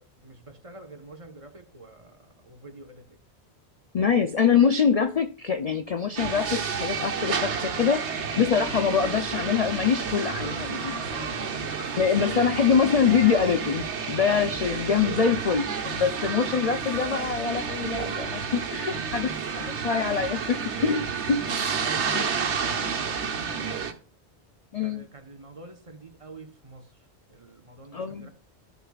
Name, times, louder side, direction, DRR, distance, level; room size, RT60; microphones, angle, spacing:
voice 1, 0.0-3.2 8.2-8.5 10.9-12.5 18.9-20.0 21.8-23.9 24.8-28.3, right 2 dB, 30° right, 5 dB, 1.2 m, -46 dB
voice 2, 3.9-11.0 12.0-21.4 22.1-22.2 24.7-25.0 27.9-28.3, left 6 dB, 50° left, 8 dB, 0.5 m, -24 dB
sound 1, 6.2-23.9, right 6 dB, 90° right, 1.3 m, -30 dB
13.5 x 6.7 x 2.4 m, 0.42 s
omnidirectional pair, 1.1 m